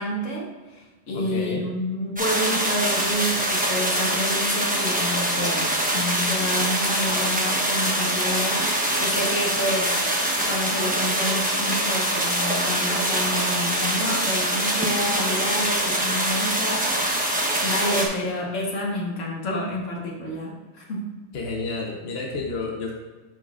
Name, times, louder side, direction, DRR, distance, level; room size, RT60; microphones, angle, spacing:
voice 1, 0.0-9.9 10.5-17.3 17.6-21.1, left 1 dB, 80° left, -2 dB, 1.7 m, -29 dB
voice 2, 1.1-1.7 21.3-22.9, left 3 dB, 55° left, -1 dB, 1.2 m, -30 dB
sound 1, 2.2-18.1, right 1 dB, 10° right, 0.7 m, -24 dB
10.5 x 3.9 x 2.5 m, 1.3 s
omnidirectional pair, 1.3 m